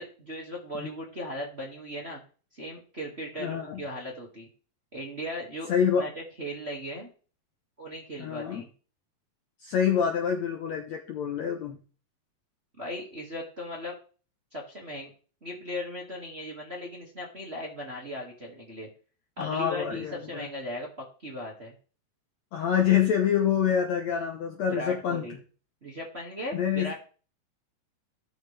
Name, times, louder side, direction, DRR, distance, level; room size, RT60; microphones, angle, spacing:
voice 1, 0.0-2.2 2.5-4.5 4.9-5.7 6.0-6.1 6.4-7.1 7.8-8.7 12.8-14.0 14.5-15.1 15.4-18.9 19.4-21.7 24.7-25.4 25.8-26.9, left 1 dB, 25° right, -2 dB, 1.5 m, -37 dB
voice 2, 3.4-3.8 5.7-6.0 8.2-8.6 9.6-11.8 19.4-20.5 22.5-25.3 26.5-26.9, left 8 dB, 65° left, 2 dB, 1.8 m, -26 dB
17.0 x 6.6 x 3.4 m, 0.39 s
omnidirectional pair, 4.3 m